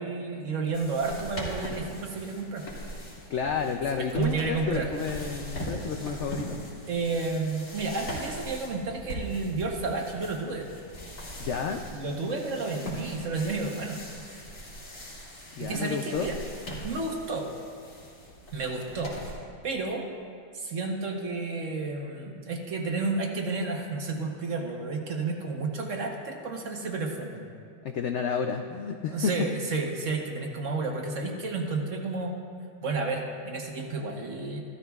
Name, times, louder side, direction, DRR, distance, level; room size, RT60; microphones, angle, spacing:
voice 1, 0.0-2.6 3.9-4.9 6.9-10.7 11.9-14.0 15.6-16.4 16.8-17.5 18.5-19.2 19.6-20.1 20.5-27.4 29.1-32.3 32.8-34.6, right 3 dB, 50° right, 2 dB, 1.2 m, -31 dB
sound 1, 0.7-19.4, equal, 65° left, 3.0 m, -40 dB
voice 2, 3.3-6.6 11.4-11.8 15.6-16.3 27.8-29.3, left 6 dB, 85° left, 5 dB, 0.6 m, -31 dB
15.0 x 12.5 x 2.3 m, 2.3 s
omnidirectional pair, 1.8 m